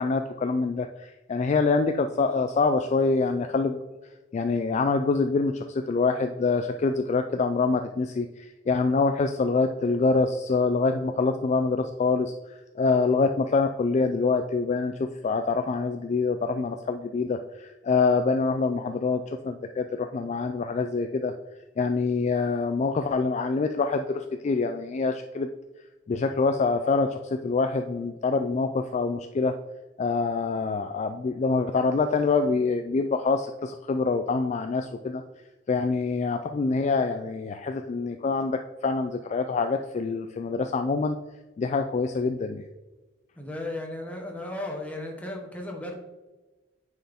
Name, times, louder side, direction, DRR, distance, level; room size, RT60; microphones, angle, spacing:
voice 1, 0.0-3.8 4.3-21.3 21.8-25.5 26.1-29.5 30.0-35.2 35.7-41.2 41.6-42.6, left 4 dB, 35° left, 6 dB, 0.3 m, -25 dB
voice 2, 43.4-45.9, left 1 dB, 10° left, 0 dB, 1.2 m, -35 dB
9.1 x 4.4 x 3.5 m, 1.1 s
head